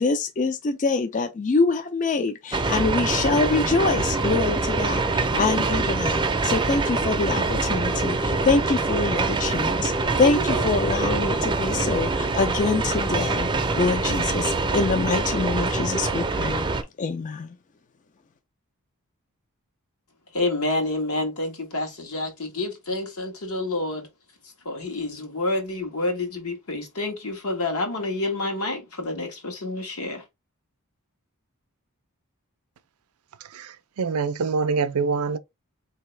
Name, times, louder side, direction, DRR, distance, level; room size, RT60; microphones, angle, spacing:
voice 1, 0.0-9.9 10.2-16.7 17.0-17.6, left 4 dB, 35° left, 0.4 m, -25 dB
sound 1, 2.5-16.8, right 3 dB, 20° right, 0.5 m, -24 dB
voice 2, 20.3-24.1 24.6-30.2, left 2 dB, 75° left, 1.4 m, -28 dB
voice 3, 33.5-35.4, right 5 dB, 75° right, 0.5 m, -25 dB
3.9 x 2.8 x 3.2 m
head